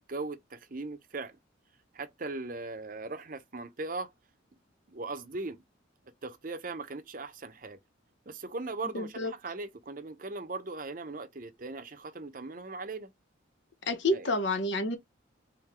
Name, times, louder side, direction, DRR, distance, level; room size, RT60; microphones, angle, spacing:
voice 1, 0.0-1.4 1.9-4.1 4.9-5.6 6.2-7.8 8.3-13.1 14.1-14.3, right 3 dB, 45° right, 0.7 m, -39 dB
voice 2, 8.9-9.3 13.9-15.0, left 2 dB, 65° left, 1.0 m, -29 dB
3.8 x 3.7 x 3.1 m
head